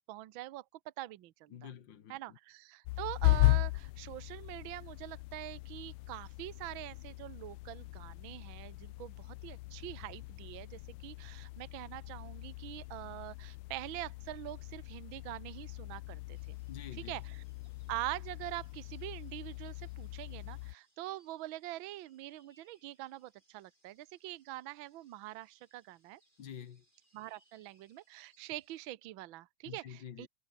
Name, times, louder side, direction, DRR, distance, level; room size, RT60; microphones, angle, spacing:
voice 1, 0.1-0.6 1.0-1.7 2.1-16.6 17.1-17.4 17.9-26.2 27.1-30.3, right 16 dB, 80° right, 1.1 m, -44 dB
voice 2, 1.5-2.4 16.7-17.2 26.4-26.8 29.6-30.3, left 9 dB, 50° left, 1.7 m, -48 dB
sound 1, 2.8-20.8, left 21 dB, 85° left, 1.9 m, -37 dB
sound 2, 16.3-28.9, right 1 dB, 15° right, 7.4 m, -73 dB
omnidirectional pair, 3.3 m